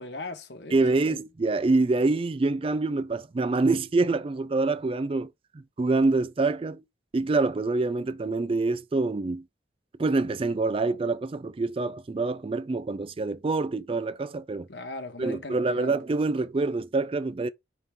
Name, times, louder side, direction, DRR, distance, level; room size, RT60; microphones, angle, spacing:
voice 1, 0.0-1.2 14.7-15.9, left 2 dB, 65° left, 1.5 m, -39 dB
voice 2, 0.7-6.8 7.1-9.4 10.0-14.7 15.2-17.5, right 3 dB, 30° right, 0.3 m, -26 dB
9.5 x 3.8 x 3.7 m
head